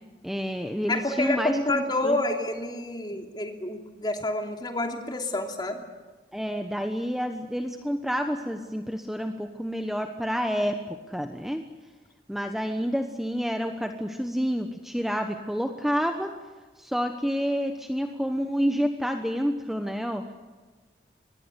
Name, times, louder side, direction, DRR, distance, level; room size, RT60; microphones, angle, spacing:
voice 1, 0.2-2.2 3.1-3.3 6.3-10.8 11.1-11.6 12.3-16.3 16.8-20.2, equal, ahead, 5 dB, 1.1 m, -29 dB
voice 2, 0.9-5.8, left 2 dB, 25° left, 4 dB, 2.9 m, -28 dB
25.0 x 20.5 x 8.3 m, 1.4 s
head